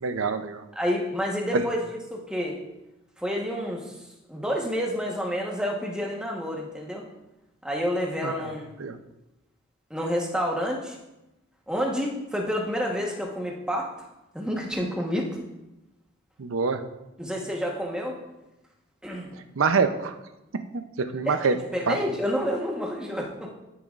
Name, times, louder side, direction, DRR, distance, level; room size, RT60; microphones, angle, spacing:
voice 1, 0.0-0.6 1.5-1.6 8.2-8.5 8.8-9.0 16.4-16.8 19.6-20.1 20.7-21.6 21.9-22.0, right 4 dB, 85° right, 9 dB, 0.6 m, -25 dB
voice 2, 0.7-2.6 3.2-4.0 4.3-7.0 7.6-8.7 9.9-11.0 11.7-13.9 14.3-15.3 17.2-18.2 19.0-19.4 21.3-23.5, equal, 5° right, -1 dB, 1.1 m, -29 dB
14.0 x 7.0 x 2.5 m, 0.95 s
head